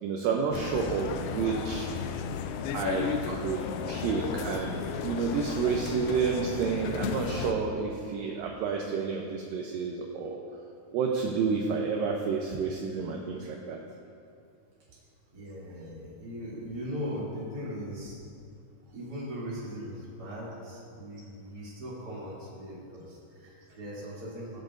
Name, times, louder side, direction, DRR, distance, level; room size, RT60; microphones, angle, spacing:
voice 1, 0.0-1.9 2.7-10.4 10.9-13.8, right 5 dB, 80° right, 0 dB, 2.2 m, -30 dB
sound 1, 0.5-7.5, left 7 dB, 85° left, 2.4 m, -34 dB
voice 2, 15.3-18.2 18.9-24.6, equal, 30° right, -8 dB, 2.8 m, -39 dB
20.5 x 7.7 x 2.6 m, 2.4 s
omnidirectional pair, 4.5 m